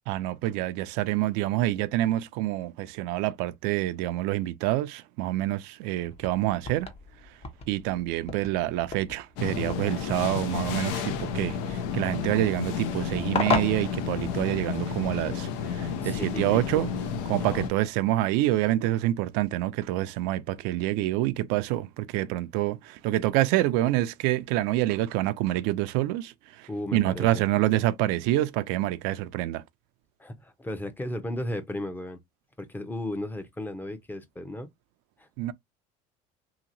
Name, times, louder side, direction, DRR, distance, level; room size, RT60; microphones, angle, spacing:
voice 1, 0.1-6.9 7.7-16.9 17.3-29.6 35.4-35.5, right 15 dB, 75° right, 0.5 m, -27 dB
sound 1, 6.1-14.8, left 5 dB, 35° left, 0.9 m, -36 dB
sound 2, 9.4-17.7, left 6 dB, 80° left, 0.7 m, -31 dB
voice 2, 16.0-16.9 17.3-17.7 26.7-27.4 30.2-32.2 32.6-34.7 35.2-35.3, left 1 dB, 10° left, 0.7 m, -35 dB
2.9 x 2.8 x 2.6 m
supercardioid pair, 100°, 17 cm